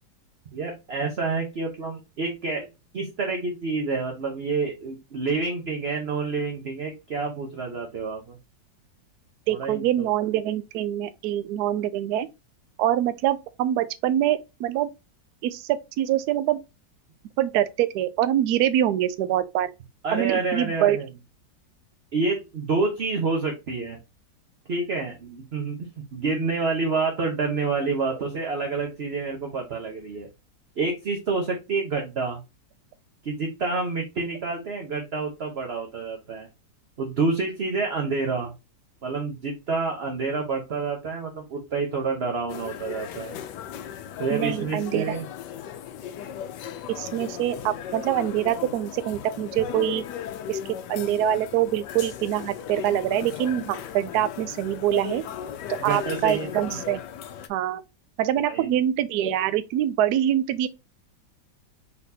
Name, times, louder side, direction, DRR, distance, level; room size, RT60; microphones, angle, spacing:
voice 1, 0.5-2.7 2.9-8.4 9.5-10.1 20.0-21.1 22.1-24.0 24.7-30.3 30.8-32.4 33.2-36.5 37.0-38.5 39.0-43.4 44.2-45.2 55.8-56.8 58.5-58.8, right 4 dB, 45° right, 0.9 m, -28 dB
voice 2, 9.5-12.3 12.8-14.9 15.4-16.6 17.4-19.7 20.1-21.0 44.3-45.2 46.9-50.0 50.5-55.2 55.8-57.0 57.5-57.8 58.2-60.7, right 12 dB, 70° right, 1.0 m, -25 dB
sound 1, 42.5-57.5, left 9 dB, 75° left, 1.2 m, -37 dB
4.2 x 4.0 x 2.7 m
omnidirectional pair, 2.0 m